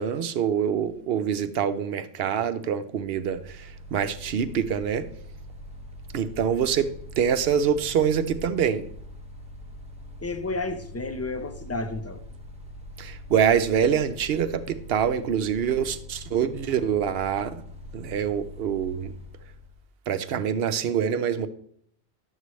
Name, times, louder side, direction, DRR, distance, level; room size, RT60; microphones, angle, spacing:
voice 1, 0.0-5.1 6.1-8.9 13.0-17.6 17.9-19.1 20.1-21.5, right 8 dB, 65° right, 12 dB, 0.8 m, -25 dB
Mechanical fan, 3.0-19.9, left 1 dB, 5° right, 0.8 m, -43 dB
voice 2, 10.2-12.2, left 2 dB, 20° left, 9 dB, 0.4 m, -31 dB
11.0 x 7.4 x 3.1 m, 0.62 s
omnidirectional pair, 1.1 m